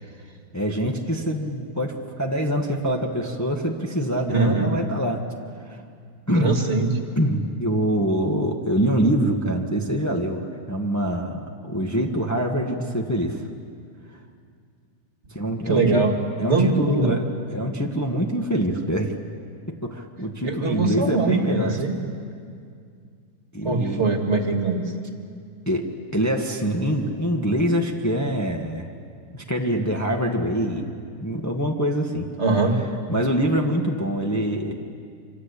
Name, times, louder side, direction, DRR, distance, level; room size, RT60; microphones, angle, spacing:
voice 1, 0.5-5.2 5.7-5.8 6.3-6.6 7.2-10.4 10.7-13.4 15.3-16.0 16.4-17.2 17.5-19.1 19.8-21.7 23.5-24.0 25.7-25.8 26.1-28.9 29.3-30.9 31.2-32.3 33.1-34.7, equal, 10° left, 1 dB, 1.6 m, -24 dB
voice 2, 4.3-4.8 6.4-7.0 15.7-16.2 16.4-17.2 20.4-22.0 23.6-24.8 32.4-32.8, right 3 dB, 45° right, 3 dB, 2.6 m, -22 dB
26.0 x 26.0 x 8.4 m, 2.3 s
omnidirectional pair, 1.7 m